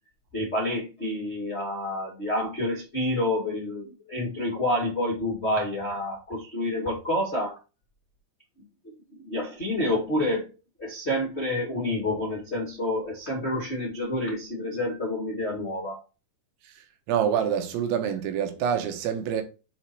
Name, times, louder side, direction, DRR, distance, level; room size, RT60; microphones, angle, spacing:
voice 1, 0.3-7.6 9.2-10.5 10.8-16.0, left 1 dB, 55° left, 0.7 m, -28 dB
voice 2, 17.1-19.4, right 8 dB, 80° right, 3.2 m, -26 dB
7.3 x 4.1 x 4.5 m
omnidirectional pair, 5.4 m